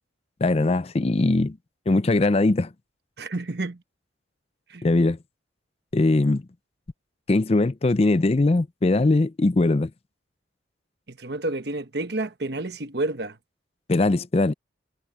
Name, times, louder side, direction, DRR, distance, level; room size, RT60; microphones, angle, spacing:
voice 1, 0.4-1.6 1.9-2.7 4.8-5.2 5.9-6.4 7.3-9.9 13.9-14.5, left 2 dB, 30° left, 0.4 m, -20 dB
voice 2, 3.2-3.8 4.7-4.8 11.1-13.4, right 2 dB, 55° right, 1.2 m, -30 dB
head